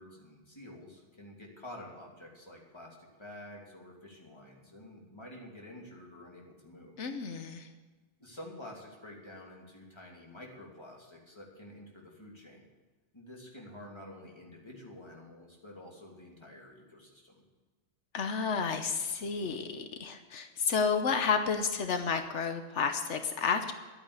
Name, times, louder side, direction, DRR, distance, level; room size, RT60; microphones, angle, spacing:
voice 1, 0.0-7.0 8.2-12.7 13.1-17.4, left 1 dB, 25° left, -1 dB, 2.9 m, -49 dB
voice 2, 7.0-7.7 18.1-23.7, left 5 dB, 85° left, 7 dB, 1.3 m, -31 dB
12.0 x 9.0 x 8.2 m, 1.3 s
omnidirectional pair, 1.2 m